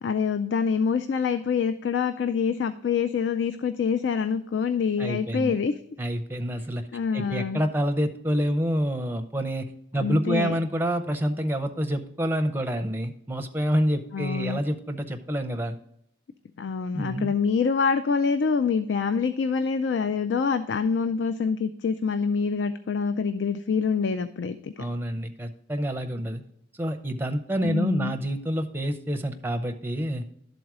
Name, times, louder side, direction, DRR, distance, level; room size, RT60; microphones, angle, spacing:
voice 1, 0.0-5.7 6.9-7.6 10.0-10.5 14.1-14.6 16.6-24.7 27.6-28.1, left 5 dB, 75° left, 11 dB, 0.4 m, -26 dB
voice 2, 5.0-5.5 6.0-6.8 7.1-9.7 9.9-15.8 16.9-17.3 24.8-26.4 26.7-30.3, equal, 10° right, 6 dB, 0.5 m, -27 dB
11.5 x 4.0 x 4.7 m, 0.74 s
head